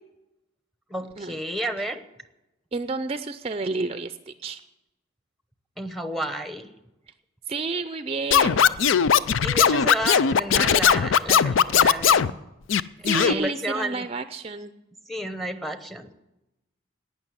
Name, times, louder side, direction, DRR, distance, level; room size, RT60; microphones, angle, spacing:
voice 1, 0.9-2.0 5.8-6.7 9.4-12.4 13.1-14.1 15.1-16.1, right 1 dB, ahead, 9 dB, 0.8 m, -31 dB
voice 2, 2.7-4.6 7.5-8.7 13.0-14.7, right 3 dB, 30° right, 11 dB, 0.5 m, -30 dB
Scratching (performance technique), 8.3-12.3 12.7-13.3, left 7 dB, 75° left, 0.4 m, -19 dB
18.5 x 6.3 x 9.9 m, 0.95 s
head